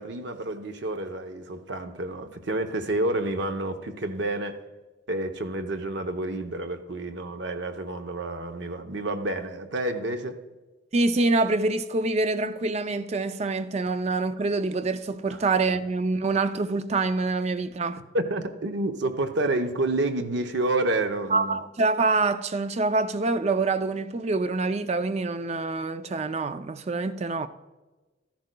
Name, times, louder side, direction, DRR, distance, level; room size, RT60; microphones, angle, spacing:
voice 1, 0.0-4.6 5.1-10.4 15.3-15.4 18.1-21.6, right 2 dB, 60° right, 0.7 m, -29 dB
voice 2, 10.9-18.0 21.3-27.5, right 3 dB, 35° right, 0.4 m, -26 dB
13.5 x 10.5 x 2.2 m
head